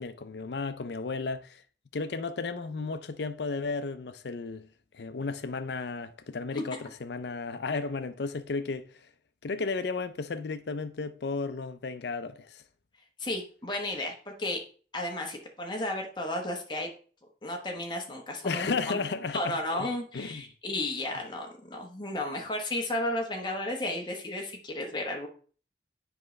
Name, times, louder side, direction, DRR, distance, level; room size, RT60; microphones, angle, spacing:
voice 1, 0.0-1.6 1.9-4.7 4.9-8.9 9.4-12.6 18.4-19.9 20.1-20.4, left 4 dB, 80° left, 0.5 m, -34 dB
voice 2, 13.2-14.6 14.9-16.9 17.4-19.0 19.3-25.3, left 1 dB, 25° left, 1.2 m, -33 dB
7.6 x 5.1 x 3.2 m
head